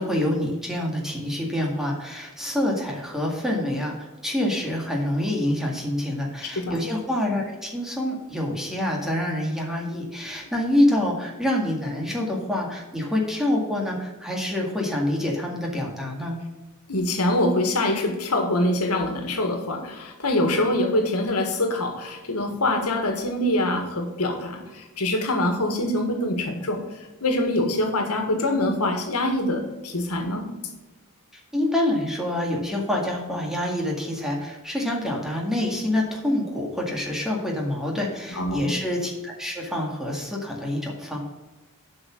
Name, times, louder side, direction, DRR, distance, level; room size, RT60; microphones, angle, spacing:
voice 1, 0.0-16.4 31.5-41.2, left 1 dB, ahead, -1 dB, 2.1 m, -26 dB
voice 2, 6.4-6.8 16.9-26.8 27.2-30.5 38.4-38.8, left 1 dB, 85° left, 4 dB, 1.7 m, -24 dB
8.0 x 5.6 x 7.1 m, 1.1 s
head